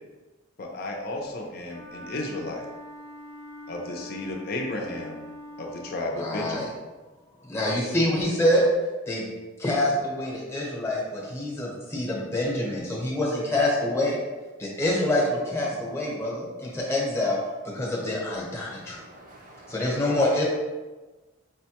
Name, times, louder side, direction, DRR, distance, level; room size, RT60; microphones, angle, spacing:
voice 1, 0.6-2.6 3.7-5.2 5.6-6.7 20.1-20.3, left 2 dB, 50° left, 0.5 m, -33 dB
Wind instrument woodwind instrument, 1.6-6.1, left 1 dB, 90° right, 1.2 m, -43 dB
voice 2, 6.1-6.7 7.5-8.6 9.1-9.3 9.6-14.2 14.6-17.4 17.7-19.0 19.7-20.5, left 1 dB, 15° left, 0.8 m, -26 dB
voice 3, 18.6-20.5, right 1 dB, 45° right, 0.5 m, -49 dB
4.8 x 2.1 x 2.8 m
head